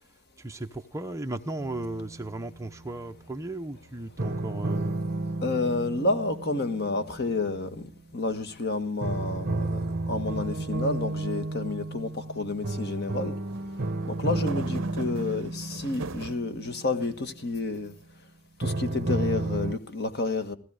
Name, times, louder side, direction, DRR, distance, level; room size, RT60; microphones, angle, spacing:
voice 1, 0.4-5.0, right 2 dB, 15° right, 0.8 m, -36 dB
sound 1, 1.6-2.8 4.2-8.2 9.0-17.8 18.6-19.8, right 2 dB, 45° right, 1.2 m, -32 dB
voice 2, 5.4-13.4 14.1-17.9 18.6-20.5, left 3 dB, 50° left, 1.6 m, -30 dB
sound 2, 13.5-16.5 17.0-17.9, right 4 dB, 60° right, 0.8 m, -40 dB
16.0 x 15.0 x 4.9 m
head